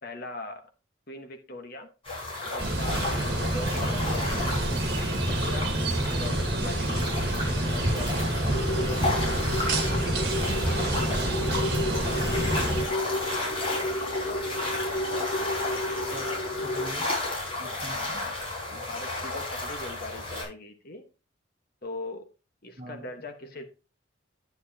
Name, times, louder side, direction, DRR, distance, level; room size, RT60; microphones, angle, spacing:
voice 1, 0.0-0.7 1.1-1.9 2.4-3.1 3.4-4.6 5.2-5.8 6.1-7.0 7.7-9.5 10.6-13.2 17.7-18.4 18.7-21.1 21.8-22.3 22.6-23.6, left 2 dB, 45° left, 1.3 m, -41 dB
sound 1, 2.0-20.4, left 2 dB, 25° left, 5.1 m, -33 dB
sound 2, 2.6-12.9, right 1 dB, 50° right, 1.8 m, -27 dB
sound 3, 8.5-16.9, left 1 dB, 90° left, 5.3 m, -32 dB
voice 2, 16.1-17.2 17.6-18.3 22.8-23.0, equal, 35° right, 1.5 m, -43 dB
10.0 x 9.4 x 2.8 m
head